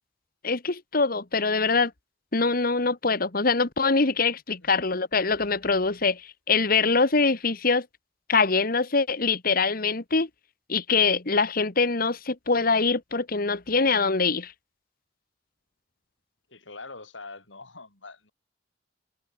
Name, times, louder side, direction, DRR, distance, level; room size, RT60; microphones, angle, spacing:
voice 1, 0.4-1.9 2.3-7.9 8.3-10.3 10.7-14.5, left 4 dB, 50° left, 1.5 m, -24 dB
voice 2, 16.5-18.3, left 3 dB, 90° left, 7.6 m, -43 dB
head